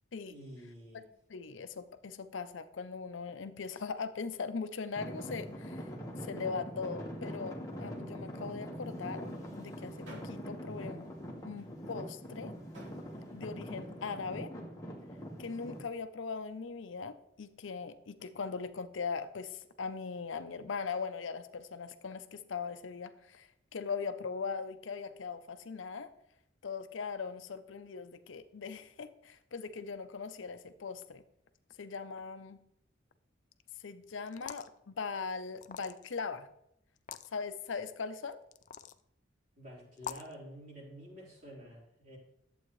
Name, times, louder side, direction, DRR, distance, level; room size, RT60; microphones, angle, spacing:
voice 1, 0.3-1.1 39.5-42.2, equal, 45° right, -5 dB, 3.5 m, -49 dB
voice 2, 1.3-5.9 6.2-9.3 9.5-11.1 11.4-12.5 13.3-14.5 15.4-26.1 26.6-31.2 31.8-32.6 33.8-36.5 37.3-38.4, left 5 dB, 80° left, 10 dB, 0.6 m, -40 dB
Traffic noise roadway noise / Engine, 4.9-15.8, equal, 20° left, 1.3 m, -43 dB
sound 1, 9.2-14.0, equal, 80° right, 2.7 m, -57 dB
sound 2, 34.3-34.8 35.6-36.2 37.0-37.3 38.5-39.0 40.0-40.3, left 8 dB, 40° left, 0.3 m, -44 dB
11.5 x 7.9 x 3.1 m, 0.79 s
head